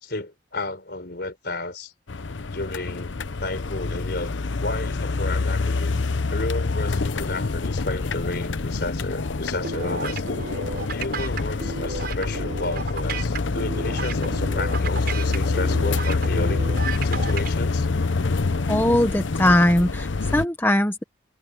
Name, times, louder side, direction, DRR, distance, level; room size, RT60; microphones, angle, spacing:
voice 1, 0.0-1.9 2.5-4.3 4.6-5.9 6.3-10.2 10.9-16.6 17.0-17.9, left 2 dB, 55° left, 4.4 m, -32 dB
sound 1, 2.1-20.4, left 3 dB, 75° left, 0.8 m, -26 dB
sound 2, 9.6-17.5, right 4 dB, 55° right, 6.2 m, -33 dB
voice 2, 18.7-21.0, left 1 dB, 10° left, 1.0 m, -20 dB
head